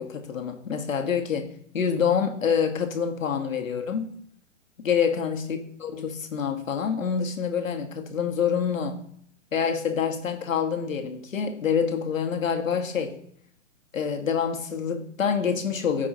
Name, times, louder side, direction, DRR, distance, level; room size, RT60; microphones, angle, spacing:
voice 1, 0.0-1.5 1.7-4.1 4.8-9.0 9.5-13.2 13.9-16.1, left 7 dB, 80° left, 1.3 m, -26 dB
14.0 x 4.8 x 2.8 m
hypercardioid pair, 130°, 39 cm